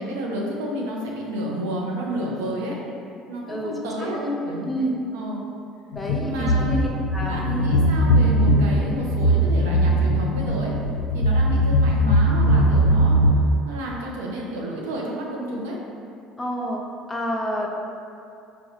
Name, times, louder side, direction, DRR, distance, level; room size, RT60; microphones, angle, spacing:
voice 1, 0.0-2.8 3.3-5.4 6.2-10.7 11.1-13.2 13.6-15.8, right 1 dB, 75° right, -2 dB, 0.5 m, -31 dB
voice 2, 3.5-5.0 5.9-7.5 16.4-17.8, equal, 20° left, -1 dB, 0.5 m, -29 dB
sound 1, 5.9-13.3, equal, 75° left, 0.3 m, -20 dB
4.6 x 2.2 x 2.7 m, 2.5 s
hypercardioid pair, 60°, 0 cm